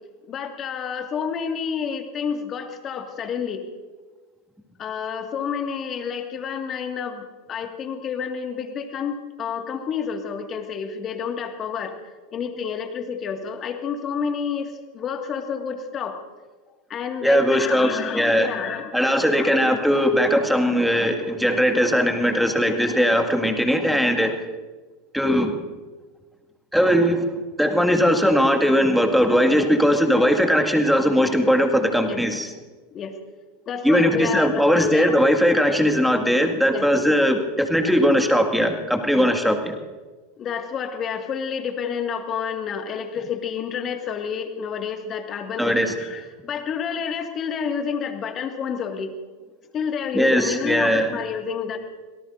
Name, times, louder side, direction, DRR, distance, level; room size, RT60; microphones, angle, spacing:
voice 1, 0.3-3.7 4.8-12.0 12.3-16.2 16.9-18.9 19.3-19.8 32.1-32.2 32.9-33.2 33.7-35.1 36.7-36.9 39.2-39.3 40.4-49.2 49.7-51.8, left 7 dB, 35° left, 5 dB, 1.9 m, -29 dB
voice 2, 17.2-18.5 18.9-24.4 25.1-25.5 26.7-27.3 27.6-32.5 33.8-39.7 45.6-45.9 50.1-51.1, equal, ahead, 4 dB, 2.0 m, -19 dB
25.0 x 18.0 x 2.6 m, 1.3 s
hypercardioid pair, 90°, 0 cm